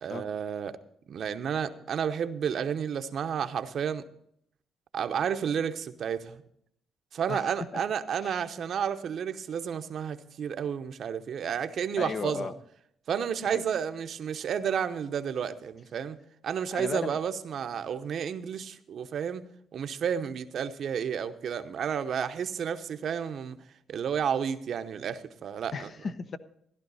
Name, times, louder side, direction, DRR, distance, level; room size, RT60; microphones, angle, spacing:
voice 1, 0.0-0.8 1.1-4.0 4.9-6.4 7.1-12.5 13.1-16.2 16.4-19.4 19.7-23.6 23.9-25.9, right 7 dB, 60° right, 0.8 m, -31 dB
voice 2, 7.3-7.8 8.2-8.5 12.0-12.5 13.4-13.6 16.7-17.2 25.7-26.4, left 4 dB, 50° left, 0.8 m, -35 dB
14.5 x 11.5 x 4.1 m
cardioid pair, 90°, 0 cm